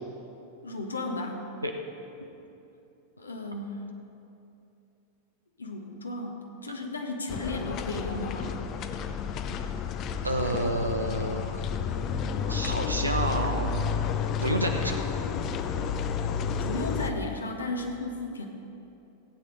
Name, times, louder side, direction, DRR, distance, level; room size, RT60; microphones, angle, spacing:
voice 1, 0.6-1.4 3.2-3.8 5.6-8.6 16.4-18.5, left 2 dB, 75° left, 2 dB, 1.3 m, -34 dB
sound 1, 7.3-17.1, left 6 dB, 35° left, 0.6 m, -31 dB
voice 2, 10.2-11.6 12.5-13.8 14.4-15.0, right 1 dB, 85° right, 3 dB, 0.8 m, -29 dB
16.0 x 8.5 x 5.0 m, 2.8 s
figure-of-eight pair, 90°, 0 cm